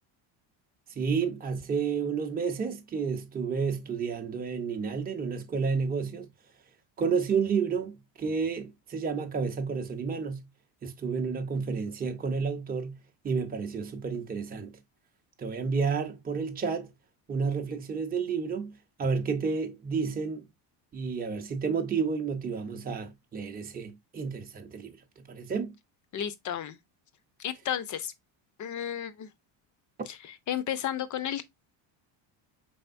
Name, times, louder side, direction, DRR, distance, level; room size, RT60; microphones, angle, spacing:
voice 1, 0.9-6.3 7.0-10.5 10.8-13.0 13.2-14.8 15.4-16.9 17.3-20.5 20.9-25.7, right 5 dB, 20° right, 0.7 m, -31 dB
voice 2, 26.1-26.8 27.4-28.1 28.6-29.3 30.1-30.2 30.5-31.4, left 10 dB, 40° left, 0.6 m, -32 dB
5.1 x 3.5 x 2.5 m
cardioid pair, 125°, 49 cm